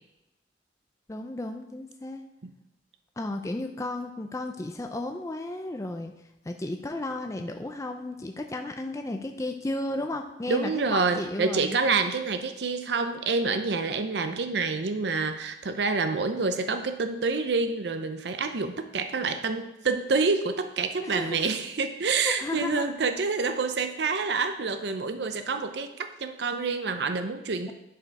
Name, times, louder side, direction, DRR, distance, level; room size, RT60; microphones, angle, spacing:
voice 1, 1.1-2.2 3.2-6.1 6.4-11.8 14.2-14.3 21.0-21.5 22.2-23.0 27.7-27.8, left 2 dB, 15° left, 4 dB, 0.4 m, -34 dB
voice 2, 10.5-27.7, right 4 dB, 70° right, 8 dB, 0.6 m, -27 dB
10.5 x 4.8 x 4.7 m, 0.93 s
head